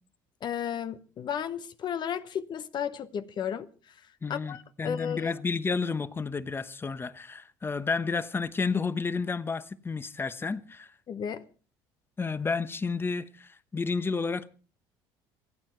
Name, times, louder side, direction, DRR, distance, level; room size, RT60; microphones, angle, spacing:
voice 1, 0.4-3.7 4.3-5.3 11.1-11.4, left 8 dB, 50° left, 0.9 m, -33 dB
voice 2, 4.2-10.9 12.2-14.5, left 4 dB, 20° left, 1.0 m, -31 dB
27.5 x 9.3 x 4.5 m
supercardioid pair, 85°, 10 cm